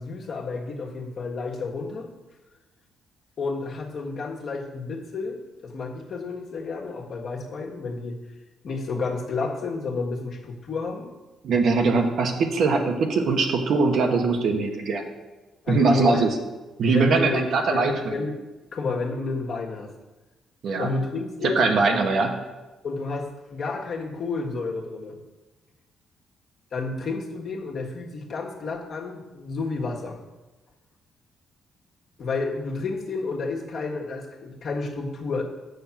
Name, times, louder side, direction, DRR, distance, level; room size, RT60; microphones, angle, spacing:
voice 1, 0.0-2.1 3.4-8.2 8.6-11.1 15.6-16.3 16.9-18.3 18.7-19.9 20.8-21.6 22.0-22.1 22.8-25.2 26.7-30.2 32.2-35.4, left 3 dB, 55° left, 0 dB, 1.6 m, -30 dB
voice 2, 11.4-15.0 15.7-16.3 16.8-18.1 20.6-20.9 21.4-22.3, right 4 dB, 65° right, 3 dB, 1.3 m, -22 dB
7.1 x 6.4 x 6.1 m, 1.2 s
cardioid pair, 90°, 0 cm